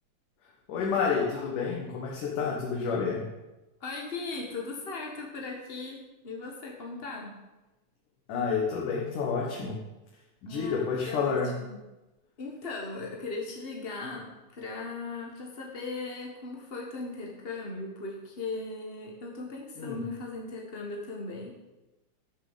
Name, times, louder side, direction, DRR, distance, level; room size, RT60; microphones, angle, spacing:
voice 1, 0.7-3.3 8.3-9.8 10.4-11.6 19.8-20.0, left 5 dB, 75° left, -3 dB, 3.1 m, -29 dB
voice 2, 3.8-7.4 10.5-11.8 12.4-21.5, left 3 dB, 50° left, -1 dB, 0.7 m, -38 dB
12.5 x 7.0 x 7.3 m, 1.0 s
omnidirectional pair, 3.7 m